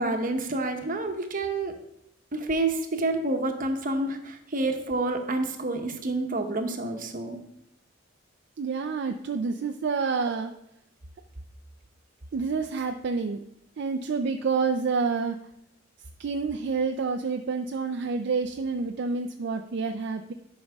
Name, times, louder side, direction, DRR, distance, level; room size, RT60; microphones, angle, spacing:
voice 1, 0.0-1.7 2.3-7.4, right 2 dB, 45° right, 5 dB, 1.0 m, -28 dB
voice 2, 8.6-10.5 12.3-13.4 13.8-15.4 16.2-20.3, right 4 dB, 60° right, 5 dB, 0.4 m, -28 dB
11.0 x 5.3 x 3.5 m, 0.78 s
head